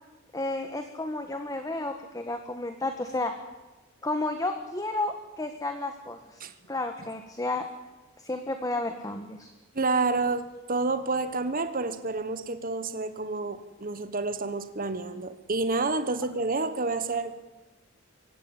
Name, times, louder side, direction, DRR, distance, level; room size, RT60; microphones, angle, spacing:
voice 1, 0.3-3.3 4.0-6.4 6.7-7.7 8.2-9.5, left 2 dB, 20° left, 6 dB, 1.5 m, -32 dB
voice 2, 9.7-17.3, right 3 dB, 45° right, 10 dB, 1.4 m, -29 dB
24.0 x 16.0 x 9.0 m, 1.1 s
head